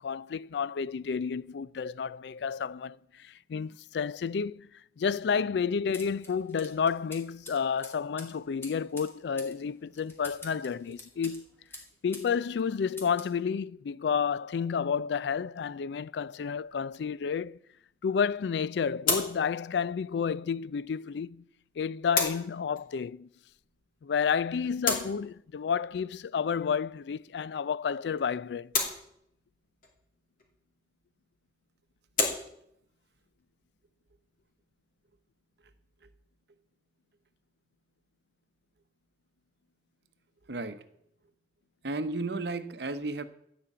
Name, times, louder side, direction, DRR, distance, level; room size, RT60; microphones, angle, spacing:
voice 1, 0.0-4.7 5.0-11.4 12.0-17.6 18.0-21.4 21.8-23.3 24.0-28.7, left 6 dB, 65° left, 0.4 m, -31 dB
sound 1, 5.9-12.3 12.6-13.4, left 1 dB, 15° left, 2.4 m, -48 dB
sound 2, 16.5-35.9, left 4 dB, 50° left, 2.7 m, -38 dB
voice 2, 40.5-40.8 41.8-43.2, right 2 dB, 65° right, 0.9 m, -33 dB
15.5 x 5.3 x 8.4 m
head